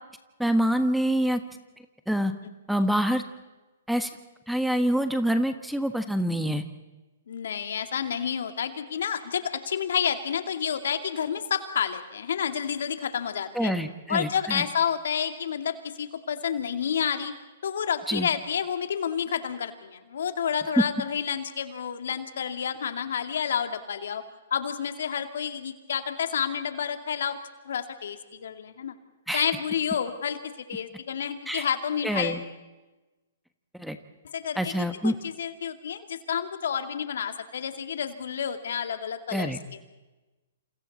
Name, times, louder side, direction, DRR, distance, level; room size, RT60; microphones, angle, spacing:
voice 1, 0.4-1.4 2.1-2.3 2.7-3.2 3.9-4.1 4.5-6.6 13.5-14.6 18.1-18.3 20.8-20.9 29.3-29.4 31.5-31.6 32.0-32.4 33.7-34.0 34.6-35.1 39.3-39.6, equal, ahead, 9 dB, 1.3 m, -25 dB
voice 2, 7.3-13.7 14.1-17.3 17.6-24.2 24.5-27.4 27.6-29.0 29.3-32.4 34.3-39.8, left 8 dB, 70° left, 7 dB, 2.2 m, -30 dB
28.5 x 28.0 x 4.2 m, 1.1 s
hypercardioid pair, 130°, 0 cm